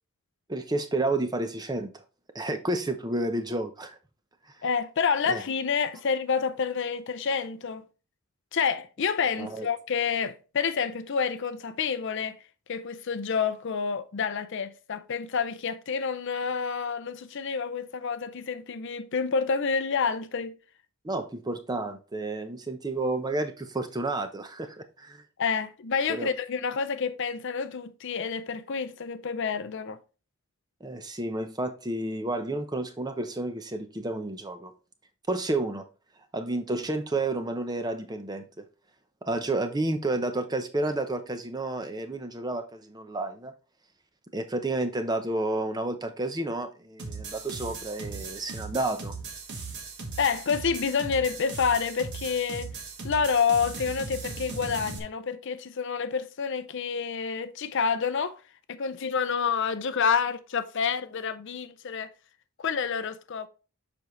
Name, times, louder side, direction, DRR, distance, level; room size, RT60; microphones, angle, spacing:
voice 1, 0.5-1.9 2.3-4.0 5.3-5.4 9.4-9.7 21.0-25.2 26.1-26.3 30.8-34.7 35.3-35.8 36.3-38.6 39.2-43.5 44.3-49.2, right 2 dB, 20° right, 0.7 m, -31 dB
voice 2, 4.6-7.8 8.5-12.4 12.7-20.6 25.4-30.0 50.2-52.7 53.0-58.4 58.7-62.1 62.6-63.5, left 6 dB, 55° left, 0.5 m, -28 dB
sound 1, 47.0-55.0, right 4 dB, 50° right, 1.4 m, -38 dB
7.2 x 5.2 x 3.1 m
head